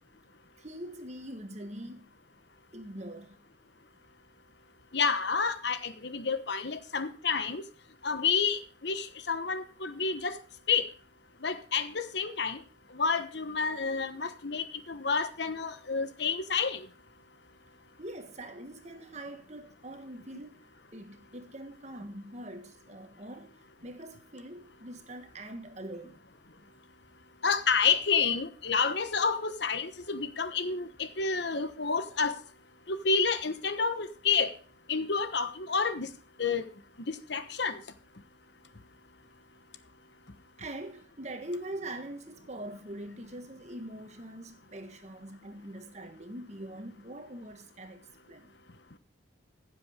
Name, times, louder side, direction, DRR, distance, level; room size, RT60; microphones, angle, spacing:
voice 1, 0.6-2.1 2.7-3.3 18.0-23.6 23.8-26.2 40.6-48.5, right 1 dB, 35° right, 1.5 m, -43 dB
voice 2, 4.9-7.6 8.0-10.4 10.7-10.9 11.4-12.6 12.9-16.8 27.4-32.4 32.9-34.5 34.9-36.1 36.4-36.6 37.1-37.8, left 5 dB, 60° left, 1.2 m, -29 dB
15.5 x 7.8 x 5.1 m
head